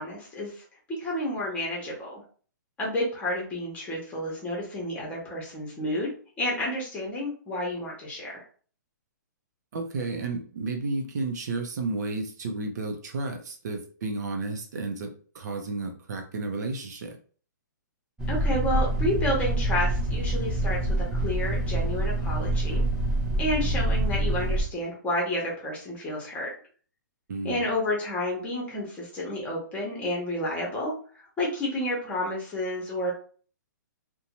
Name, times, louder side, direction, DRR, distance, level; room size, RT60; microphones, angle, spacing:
voice 1, 0.0-2.2 2.8-8.4 18.3-22.8 23.4-26.5 27.4-33.1, left 1 dB, 10° left, -3 dB, 0.9 m, -30 dB
voice 2, 9.7-17.2 27.3-27.6, right 3 dB, 60° right, 4 dB, 0.6 m, -32 dB
sound 1, 18.2-24.6, right 1 dB, 5° right, 0.5 m, -26 dB
2.6 x 2.2 x 2.9 m, 0.42 s
hypercardioid pair, 155°, 10 cm